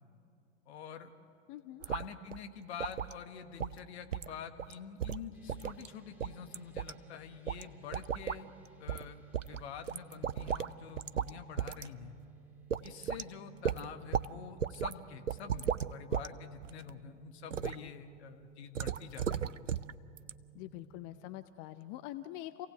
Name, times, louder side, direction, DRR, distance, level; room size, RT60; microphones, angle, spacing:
voice 1, 0.7-1.1 1.8-8.5 8.8-12.1 12.8-19.6, left 7 dB, 60° left, 7 dB, 1.7 m, -47 dB
voice 2, 1.5-1.9 17.6-17.9 20.5-22.7, left 14 dB, 35° left, 12 dB, 0.6 m, -45 dB
sound 1, 1.8-2.1 2.3-2.4 2.8-3.2 3.6-3.8 4.1-4.3 4.6-4.7 5.0-5.9 6.2-6.9 7.5-7.6 7.9-8.4 8.9-9.1 9.3-10.7 11.0-11.3 11.6-11.9 12.2-12.3 12.7-13.3 13.7-14.3 14.6-14.9 15.3-16.3 16.6-16.9 17.5-17.8 18.8-19.9 20.2-20.3, right 8 dB, 90° right, 0.6 m, -35 dB
sound 2, 5.3-21.3, right 9 dB, 5° right, 2.6 m, -59 dB
27.0 x 17.0 x 7.9 m, 2.5 s
figure-of-eight pair, 95°, 37 cm